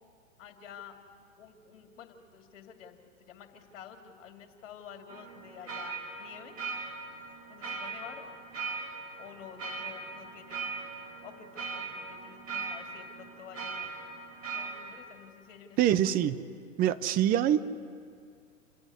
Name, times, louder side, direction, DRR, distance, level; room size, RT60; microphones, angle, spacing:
voice 1, 0.4-1.0 1.4-3.0 3.3-6.6 7.5-8.3 9.2-10.7 11.2-13.9 14.5-16.0, left 8 dB, 55° left, 4 dB, 2.7 m, -49 dB
sound 1, 5.1-15.0, right 4 dB, 75° right, 3.4 m, -40 dB
voice 2, 15.8-16.4 16.8-17.8, right 11 dB, 20° right, 14 dB, 0.6 m, -25 dB
27.5 x 9.8 x 9.7 m, 2.2 s
hypercardioid pair, 115°, 40 cm